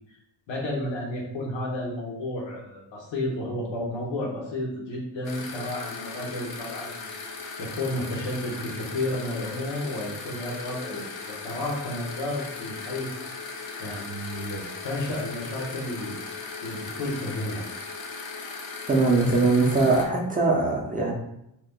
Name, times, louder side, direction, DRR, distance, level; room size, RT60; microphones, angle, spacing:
voice 1, 0.5-7.1 7.6-13.1 13.4-16.2 16.6-17.6, left 1 dB, 85° left, -2 dB, 1.1 m, -32 dB
sound 1, 5.2-20.0, left 4 dB, 55° left, 0.6 m, -38 dB
voice 2, 18.9-21.1, right 3 dB, 20° right, -2 dB, 0.4 m, -21 dB
2.9 x 2.1 x 3.5 m, 0.80 s
wide cardioid pair, 140°, 44 cm